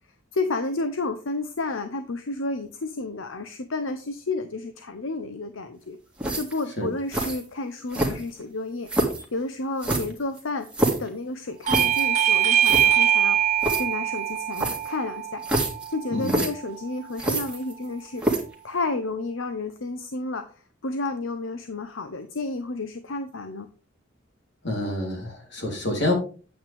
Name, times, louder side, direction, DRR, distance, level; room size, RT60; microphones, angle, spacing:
voice 1, 0.3-6.0 6.3-8.9 9.3-10.7 11.0-13.4 13.8-15.4 15.9-18.2 18.6-20.5 20.8-23.7, left 3 dB, 80° left, 9 dB, 0.8 m, -31 dB
sound 1, 6.2-6.6 7.1-7.4 7.9-8.4 8.9-9.2 9.8-11.1 11.7-12.0 12.4-12.5 12.6-12.9 13.6-13.8 14.5-14.9 15.4-15.9 16.2-16.5 17.2-17.9 18.2-18.5, right 1 dB, 5° right, 2.1 m, -26 dB
Bell / Doorbell, 11.7-16.8, right 10 dB, 40° right, 0.4 m, -23 dB
voice 2, 16.1-16.4 24.6-26.1, left 1 dB, 60° left, 1 dB, 3.5 m, -27 dB
8.7 x 8.6 x 3.5 m, 0.36 s
head